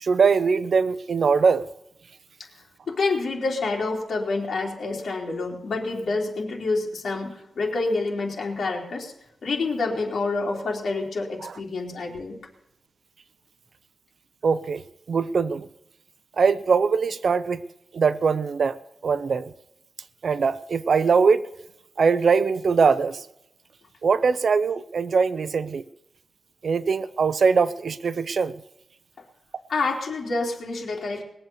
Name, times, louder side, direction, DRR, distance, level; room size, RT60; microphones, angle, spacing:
voice 1, 0.0-1.7 11.4-11.5 14.4-14.8 15.1-15.7 16.4-17.6 17.9-18.8 19.0-19.5 20.2-21.5 22.0-23.2 24.0-25.8 26.6-28.6, right 5 dB, 60° right, 16 dB, 0.6 m, -21 dB
voice 2, 2.9-9.1 9.4-12.4 29.7-31.2, left 3 dB, 65° left, -1 dB, 3.5 m, -27 dB
20.5 x 7.9 x 7.1 m, 0.85 s
wide cardioid pair, 140°, 0 cm